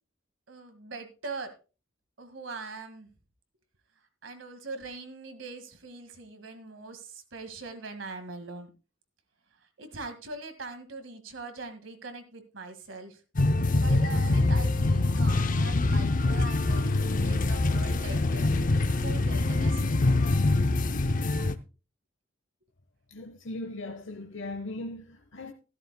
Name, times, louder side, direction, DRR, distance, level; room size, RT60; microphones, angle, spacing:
voice 1, 0.5-1.5 2.2-3.1 4.2-8.7 9.6-13.2 13.8-18.6 19.0-20.4, right 3 dB, 75° right, 1.9 m, -42 dB
sound 1, 13.4-21.6, left 2 dB, 45° left, 0.6 m, -24 dB
voice 2, 23.1-25.5, left 2 dB, 70° left, 1.0 m, -38 dB
14.5 x 12.5 x 2.2 m
head